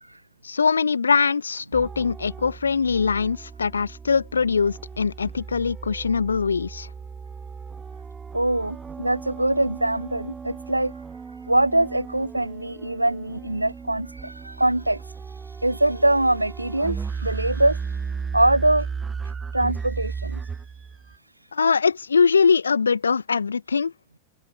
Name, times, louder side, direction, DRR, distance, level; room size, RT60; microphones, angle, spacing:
voice 1, 0.4-6.9 21.5-23.9, left 5 dB, 75° left, 1.6 m, -22 dB
sound 1, 1.7-21.2, right 5 dB, 15° right, 1.0 m, -35 dB
voice 2, 8.3-10.9 11.5-15.0 15.6-17.8 18.3-18.9 19.5-20.4, right 1 dB, 85° right, 0.3 m, -23 dB
figure-of-eight pair, 90°, 0 cm